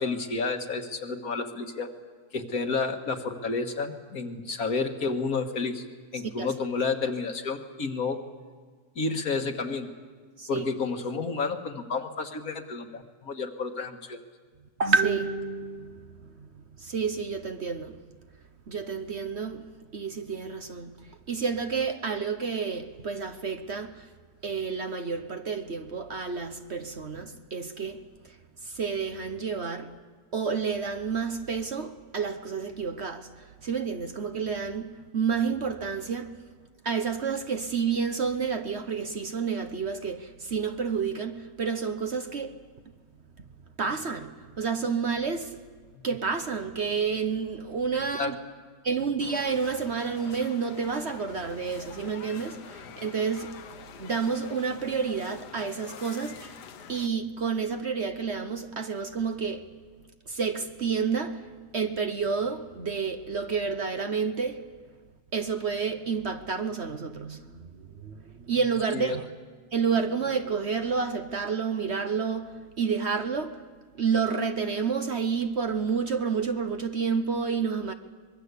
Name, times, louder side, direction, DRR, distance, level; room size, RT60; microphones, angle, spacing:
voice 1, 0.0-1.9 2.3-5.8 6.1-8.2 9.0-9.9 10.5-14.2 48.2-48.3 68.9-69.2, left 4 dB, 60° left, 2.1 m, -30 dB
voice 2, 6.1-6.5 10.4-10.6 14.8-18.0 18.7-24.1 24.4-29.9 30.3-36.4 36.8-42.6 43.4-43.5 43.8-45.6 46.0-48.4 48.8-53.6 54.0-56.6 56.9-59.7 60.3-64.6 65.3-69.3 69.7-73.6 73.9-77.9, right 5 dB, 45° right, 1.1 m, -30 dB
sound 1, 49.2-57.1, left 8 dB, 80° left, 1.6 m, -46 dB
24.5 x 21.5 x 8.3 m
omnidirectional pair, 1.7 m